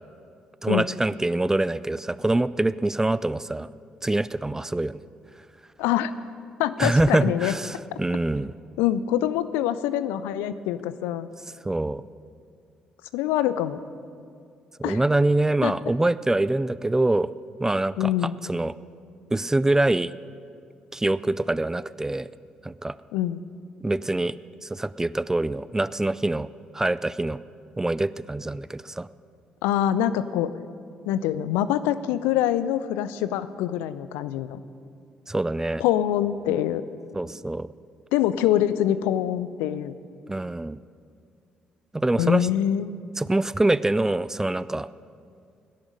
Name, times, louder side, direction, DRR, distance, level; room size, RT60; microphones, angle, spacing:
voice 1, 0.6-3.7 4.0-5.0 6.8-8.5 11.7-12.0 14.8-17.3 17.6-18.1 18.4-18.7 19.3-20.1 20.9-22.3 22.6-23.0 23.8-26.5 26.7-27.4 27.8-29.1 35.3-35.8 37.1-37.7 40.3-40.8 41.9-42.5 43.2-44.9, right 2 dB, 15° right, 17 dB, 0.4 m, -24 dB
voice 2, 5.8-6.1 6.6-7.5 8.8-11.3 13.1-13.8 14.8-15.0 15.6-15.7 18.0-18.4 23.1-23.4 29.6-30.5 31.1-34.6 35.8-36.8 38.1-40.0 42.2-43.0, left 11 dB, 65° left, 14 dB, 0.4 m, -25 dB
18.0 x 10.5 x 5.3 m, 2.3 s
figure-of-eight pair, 40°, 4 cm